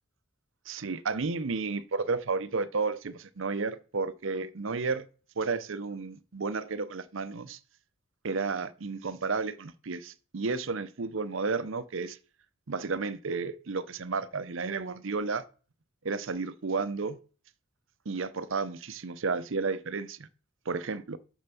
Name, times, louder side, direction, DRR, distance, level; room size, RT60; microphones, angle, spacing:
voice 1, 0.7-5.0 5.4-7.6 8.2-12.2 12.7-15.4 16.0-17.2 18.1-20.2 20.7-21.2, right 4 dB, 65° right, 0.7 m, -32 dB
6.9 x 5.4 x 6.9 m
head